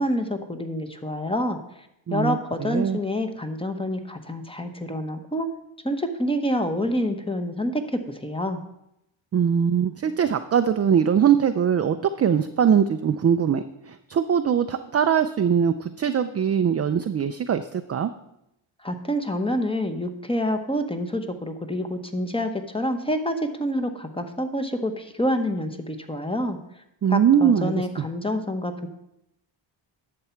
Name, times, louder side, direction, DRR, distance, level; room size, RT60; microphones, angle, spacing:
voice 1, 0.0-1.6 2.1-5.5 5.8-8.6 18.8-26.6 27.1-28.9, equal, 10° left, 8 dB, 0.9 m, -27 dB
voice 2, 2.6-3.0 9.3-18.1 27.0-27.7, right 8 dB, 35° right, 8 dB, 0.4 m, -21 dB
11.0 x 7.0 x 4.5 m, 0.83 s
cardioid pair, 90°, 49 cm